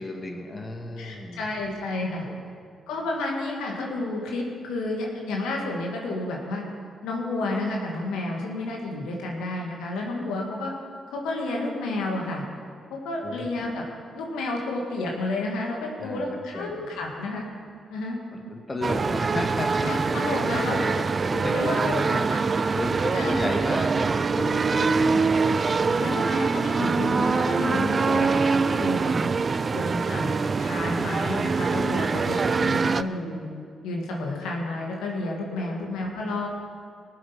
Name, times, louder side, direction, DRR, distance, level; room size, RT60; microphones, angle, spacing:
voice 1, 0.0-1.5 2.3-2.5 13.2-13.5 16.0-16.9 18.3-21.0 21.3-22.3 22.7-26.0 35.5-35.8, left 2 dB, 30° left, 2 dB, 2.0 m, -34 dB
voice 2, 1.0-2.2 2.9-6.6 7.0-10.7 11.1-12.4 12.9-13.8 14.1-17.5 17.9-18.2 19.8-20.9 21.5-22.4 23.1-23.4 24.7-25.1 26.0-29.3 29.7-30.3 30.6-33.5 33.8-36.5, left 2 dB, 75° left, -1 dB, 2.0 m, -31 dB
sound 1, 18.8-33.0, right 4 dB, 45° right, 0.5 m, -24 dB
19.5 x 7.6 x 5.8 m, 2.2 s
hypercardioid pair, 45°, 0 cm